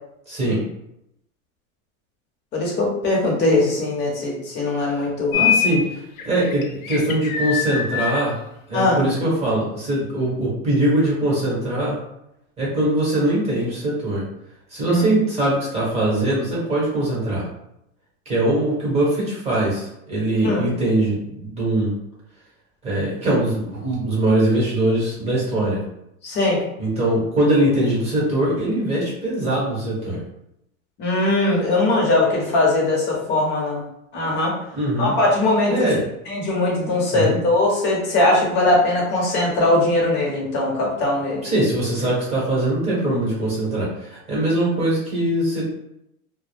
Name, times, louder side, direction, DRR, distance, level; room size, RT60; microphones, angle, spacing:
voice 1, 0.3-0.6 4.9-5.1 5.3-5.8 6.2-8.4 8.7-12.0 12.6-14.2 14.7-17.4 18.3-22.0 22.8-25.8 26.8-30.2 34.7-35.1 35.7-36.0 37.1-37.4 41.4-45.8, right 1 dB, 15° right, -6 dB, 0.9 m, -22 dB
voice 2, 2.5-5.4 8.7-9.0 14.9-15.0 20.4-20.7 26.2-26.6 31.0-33.8 34.1-34.6 35.0-35.7 36.3-41.4, left 2 dB, 25° left, -3 dB, 0.6 m, -20 dB
sound 1, 5.3-5.8 6.2-8.2, left 8 dB, 75° left, 0.6 m, -22 dB
2.2 x 2.0 x 3.2 m, 0.81 s
supercardioid pair, 145°, 42 cm